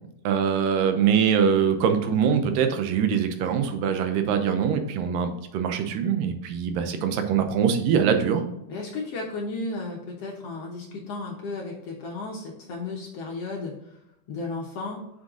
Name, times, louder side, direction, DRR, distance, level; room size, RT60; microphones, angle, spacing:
voice 1, 0.2-8.5, right 7 dB, 85° right, 7 dB, 2.5 m, -23 dB
voice 2, 8.7-13.7 14.3-15.0, left 3 dB, 65° left, -1 dB, 1.6 m, -34 dB
6.3 x 5.7 x 3.8 m, 0.84 s
omnidirectional pair, 3.8 m